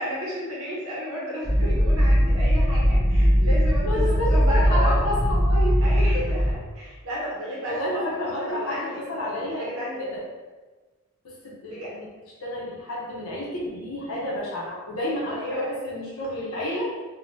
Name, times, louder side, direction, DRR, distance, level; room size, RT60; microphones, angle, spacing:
voice 1, 0.0-4.9 5.8-10.1 11.7-11.9 15.4-15.7, equal, 70° right, -6 dB, 1.0 m, -33 dB
sound 1, 1.4-6.5, equal, 20° left, 0.7 m, -20 dB
voice 2, 3.8-5.8 6.1-6.2 7.6-9.7 10.0-10.2 11.2-12.1 12.4-16.9, left 1 dB, 75° left, -4 dB, 0.6 m, -30 dB
2.8 x 2.1 x 3.0 m, 1.3 s
head